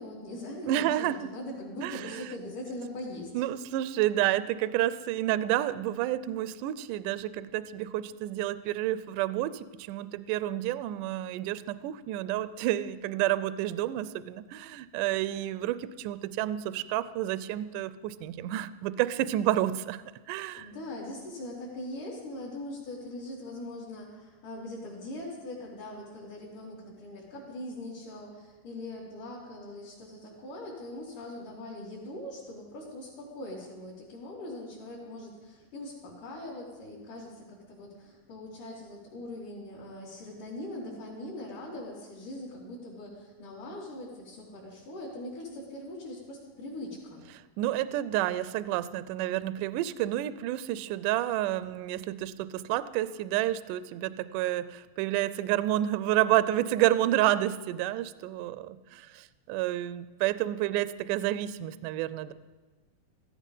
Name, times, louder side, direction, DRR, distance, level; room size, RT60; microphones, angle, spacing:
voice 1, 0.0-3.3 20.5-47.2, left 1 dB, 60° left, -9 dB, 4.6 m, -41 dB
voice 2, 0.7-1.3 1.8-2.2 3.3-20.0 20.3-20.7 47.6-62.3, right 13 dB, 80° right, 14 dB, 1.9 m, -30 dB
15.5 x 15.0 x 5.6 m, 1.2 s
omnidirectional pair, 4.2 m